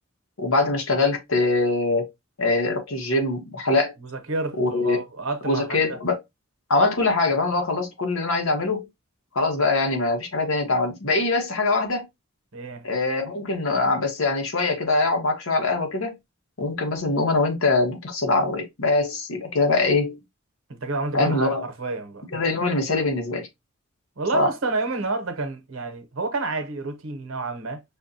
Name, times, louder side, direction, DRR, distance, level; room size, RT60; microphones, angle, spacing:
voice 1, 0.4-2.1 2.4-3.9 4.6-5.0 5.4-6.2 6.7-8.9 9.3-12.1 12.8-16.1 16.6-20.2 21.1-21.6 22.3-23.5 24.3-24.5, left 3 dB, 85° left, 1.2 m, -23 dB
voice 2, 4.0-4.6 4.8-6.0 12.5-12.9 20.7-22.3 24.2-27.8, right 3 dB, 80° right, 0.9 m, -29 dB
5.5 x 2.3 x 2.6 m
head